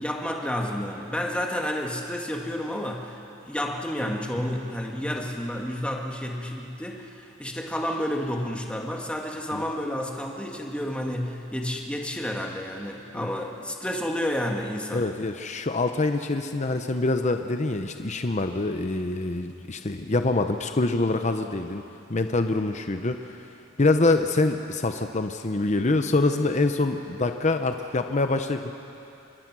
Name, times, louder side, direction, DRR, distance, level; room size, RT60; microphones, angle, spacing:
voice 1, 0.0-3.2 3.4-15.1, equal, 5° left, 0 dB, 1.9 m, -30 dB
voice 2, 14.9-21.8 22.1-23.5 23.8-28.7, left 2 dB, 35° left, 7 dB, 0.8 m, -25 dB
26.0 x 22.0 x 6.2 m, 2.8 s
head